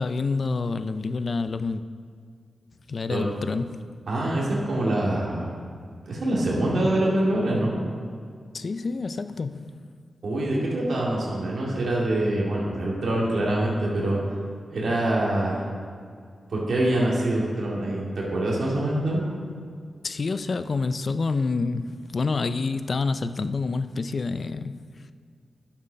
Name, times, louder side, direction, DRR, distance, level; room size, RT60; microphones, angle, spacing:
voice 1, 0.0-1.8 2.9-3.8 8.5-9.9 20.0-24.8, left 4 dB, 60° left, 12 dB, 0.4 m, -28 dB
voice 2, 4.1-5.5 6.1-7.8 10.2-14.2 14.7-15.6 16.5-19.3, right 1 dB, 75° right, -4 dB, 2.2 m, -25 dB
9.0 x 7.3 x 5.6 m, 2.2 s
cardioid pair, 65°, 0 cm